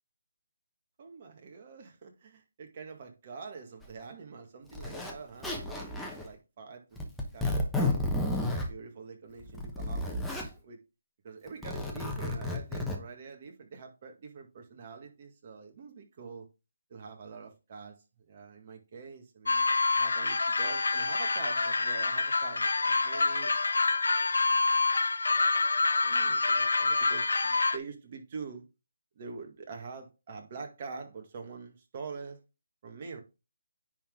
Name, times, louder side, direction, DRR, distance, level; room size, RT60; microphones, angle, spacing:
voice 1, 1.0-6.8 7.3-8.0 8.7-10.8 11.2-16.5 16.9-19.7 19.9-23.6 24.3-24.6 26.0-28.6 29.2-32.4 32.8-33.2, right 5 dB, 40° right, 1.9 m, -45 dB
Zipper (clothing), 3.8-3.9 4.7-5.1 5.4-6.3 7.0-8.7 9.4-10.5 11.5-13.0, left 1 dB, 5° left, 1.1 m, -32 dB
sound 1, 19.5-27.8, left 3 dB, 80° left, 0.7 m, -27 dB
10.0 x 3.9 x 3.7 m
hypercardioid pair, 160°, 0 cm